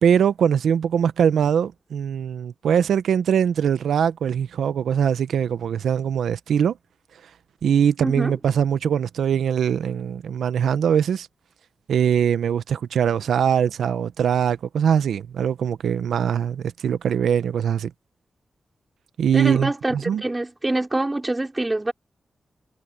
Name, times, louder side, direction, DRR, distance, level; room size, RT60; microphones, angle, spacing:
voice 1, 0.0-6.7 7.6-11.3 11.9-17.9 19.2-20.2, right 8 dB, 85° right, 0.8 m, -22 dB
voice 2, 8.0-8.3 19.3-21.9, right 2 dB, 25° right, 3.6 m, -25 dB
cardioid pair, 50°, 0 cm